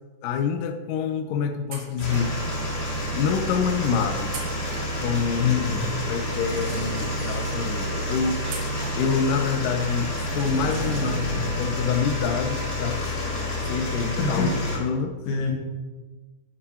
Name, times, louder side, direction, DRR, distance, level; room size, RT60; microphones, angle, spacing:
voice 1, 0.2-2.4 3.2-4.3 5.0-5.6 6.1-8.6 9.0-13.2 13.6-15.2, left 6 dB, 85° left, 7 dB, 1.9 m, -27 dB
sound 1, 1.7-2.6 4.3-5.4 8.4-9.4, right 4 dB, 65° right, 2.8 m, -40 dB
sound 2, 2.0-14.8, left 1 dB, 30° left, 2.5 m, -29 dB
voice 2, 5.4-5.9 14.2-14.5 15.3-15.5, left 6 dB, 60° left, 0 dB, 2.9 m, -24 dB
Sliding door, 6.5-8.0 10.2-12.2, right 1 dB, 85° right, 1.2 m, -37 dB
10.0 x 6.2 x 5.6 m, 1.3 s
omnidirectional pair, 4.6 m